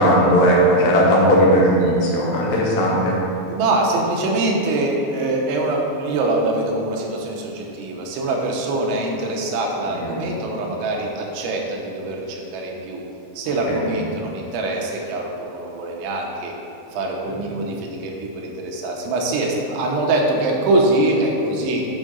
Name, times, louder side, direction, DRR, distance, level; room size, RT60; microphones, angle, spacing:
voice 1, 0.0-3.2 10.1-10.2 13.7-13.9, equal, 75° left, -3 dB, 3.1 m, -17 dB
voice 2, 3.5-13.0 13.3-16.5 16.9-21.9, right 2 dB, 85° right, -1 dB, 3.2 m, -23 dB
7.4 x 5.4 x 5.0 m, 2.8 s
omnidirectional pair, 5.3 m